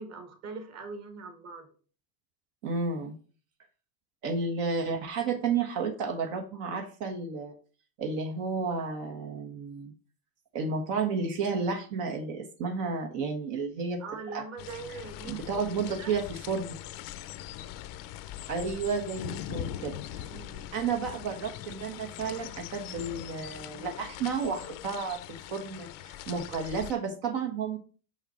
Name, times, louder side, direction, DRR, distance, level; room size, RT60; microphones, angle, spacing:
voice 1, 0.0-1.7 14.0-15.6 15.9-16.1 20.3-20.7, right 4 dB, 30° right, 5 dB, 1.7 m, -42 dB
voice 2, 2.6-3.2 4.2-7.5 8.0-9.9 10.5-14.0 14.3-14.4 15.3-16.7 18.5-20.2 20.7-27.8, right 4 dB, 60° right, 3 dB, 1.5 m, -32 dB
sound 1, 14.6-26.9, left 12 dB, 45° left, 0.6 m, -41 dB
5.8 x 5.7 x 4.3 m, 0.40 s
supercardioid pair, 115°, 48 cm